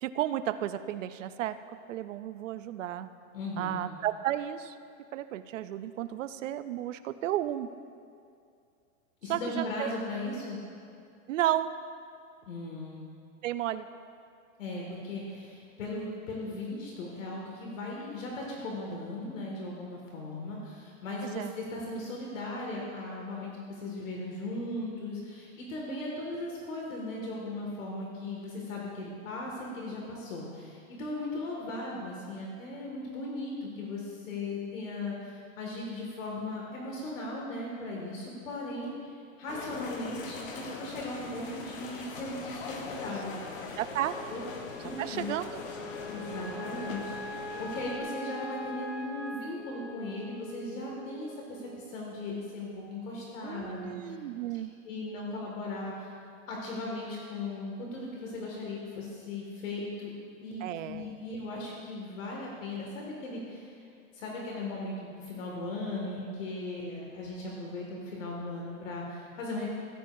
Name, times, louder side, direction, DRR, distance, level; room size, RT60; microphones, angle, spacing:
voice 1, 0.0-1.6 1.9-3.1 3.6-4.8 5.1-7.7 9.3-9.9 11.3-11.7 13.4-13.9 21.2-21.5 43.8-44.2 45.0-45.6 53.4-54.7 60.6-61.2, right 12 dB, 65° right, 12 dB, 0.5 m, -33 dB
voice 2, 3.3-3.9 9.2-10.6 12.5-13.0 14.6-39.0 39.4-43.3 44.3-44.4 44.8-45.3 46.0-51.6 51.9-54.1 54.9-56.1 56.5-60.2 60.4-63.7 64.1-69.7, left 2 dB, 65° left, -2 dB, 2.0 m, -37 dB
sound 1, 39.5-48.0, left 4 dB, 40° left, 0.9 m, -41 dB
Wind instrument woodwind instrument, 43.8-52.3, equal, 5° left, 1.6 m, -43 dB
16.5 x 9.0 x 2.6 m, 2.4 s
supercardioid pair, 175°, 42 cm